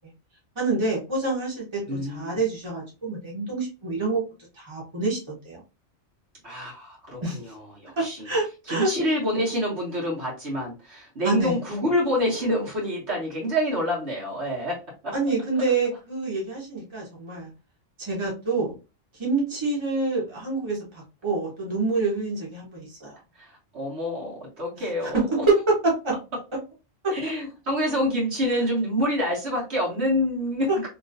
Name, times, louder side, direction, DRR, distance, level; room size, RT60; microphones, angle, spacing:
voice 1, 0.5-4.2 4.6-5.6 7.2-7.4 8.0-8.9 11.2-11.6 15.1-17.5 18.0-18.7 19.2-23.2 24.8-25.1 25.5-25.6 25.8-26.1 27.0-27.1 30.7-30.8, right 3 dB, 25° right, -4 dB, 1.4 m, -27 dB
voice 2, 1.9-2.4 6.4-8.3 8.7-14.8 15.0-15.1 23.3-25.5 27.1-30.9, equal, 65° right, -4 dB, 1.7 m, -27 dB
3.1 x 3.0 x 2.6 m, 0.29 s
omnidirectional pair, 1.2 m